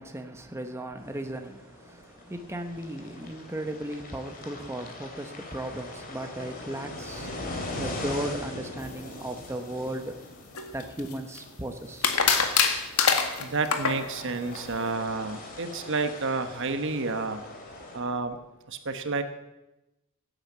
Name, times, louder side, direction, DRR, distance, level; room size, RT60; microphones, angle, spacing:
voice 1, 0.0-7.4 7.7-10.2 10.7-12.2, right 1 dB, 10° right, 1.0 m, -36 dB
sound 1, 1.0-18.0, left 2 dB, 40° left, 3.1 m, -41 dB
sound 2, 10.6-11.4 12.0-14.0, left 6 dB, 75° left, 1.8 m, -24 dB
voice 2, 13.4-17.4 17.9-18.4 18.7-19.2, right 3 dB, 60° right, 1.2 m, -30 dB
16.0 x 9.1 x 7.4 m
head